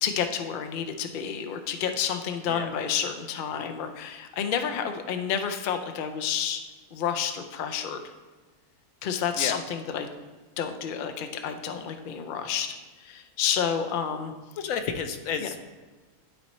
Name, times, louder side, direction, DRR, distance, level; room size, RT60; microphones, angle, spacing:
voice 1, 0.0-6.6 6.9-8.0 9.0-10.1 10.6-14.3 15.4-15.5, left 8 dB, 90° left, 6 dB, 0.4 m, -30 dB
voice 2, 14.6-15.6, left 6 dB, 70° left, 7 dB, 1.0 m, -31 dB
12.0 x 4.1 x 3.1 m, 1.3 s
omnidirectional pair, 1.6 m